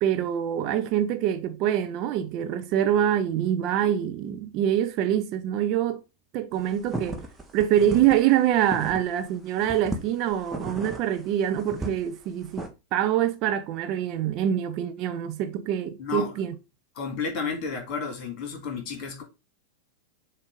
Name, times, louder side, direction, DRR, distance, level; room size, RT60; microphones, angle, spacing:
voice 1, 0.0-6.0 6.3-7.2 7.5-12.6 12.9-16.5, right 10 dB, 40° right, 0.7 m, -25 dB
sound 1, 6.6-9.3 9.6-12.7, right 1 dB, 10° right, 1.2 m, -35 dB
voice 2, 16.0-16.4 17.0-19.2, left 5 dB, 40° left, 2.3 m, -32 dB
7.1 x 2.7 x 5.2 m
figure-of-eight pair, 90°, 0 cm